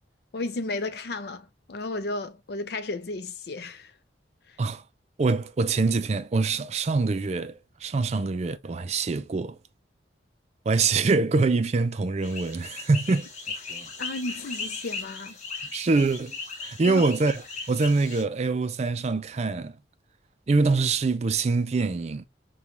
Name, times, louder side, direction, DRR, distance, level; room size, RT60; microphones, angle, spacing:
voice 1, 0.3-3.9 4.5-4.6 14.0-15.4 16.8-17.0, left 2 dB, 60° left, 0.5 m, -33 dB
voice 2, 5.2-9.6 10.7-13.3 15.7-16.4 16.6-17.4 17.7-19.8 20.5-22.2, right 3 dB, 35° right, 0.4 m, -24 dB
sound 1, 12.2-18.2, left 4 dB, 40° left, 1.2 m, -37 dB
5.1 x 2.3 x 2.9 m
head